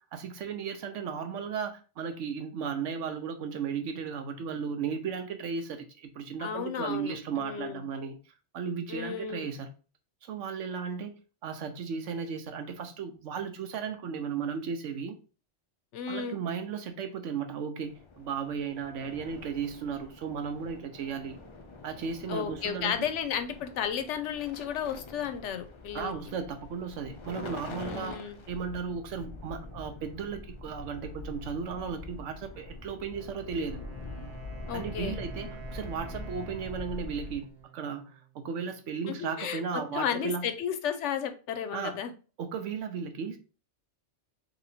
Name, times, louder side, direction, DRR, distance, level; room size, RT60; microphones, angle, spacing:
voice 1, 0.1-8.2 8.5-9.7 10.2-11.1 11.4-15.2 16.1-21.4 21.8-23.0 25.9-33.8 34.7-40.5 41.7-42.0 42.4-43.4, right 6 dB, 90° right, 1.0 m, -35 dB
voice 2, 6.4-7.8 8.9-9.5 15.9-16.4 22.3-26.1 27.8-28.4 34.7-35.2 39.1-42.1, left 8 dB, 80° left, 0.9 m, -33 dB
sound 1, 17.8-37.6, left 3 dB, 50° left, 0.3 m, -44 dB
Wind instrument woodwind instrument, 33.1-38.8, right 9 dB, 65° right, 1.2 m, -50 dB
3.0 x 2.9 x 4.1 m
omnidirectional pair, 1.2 m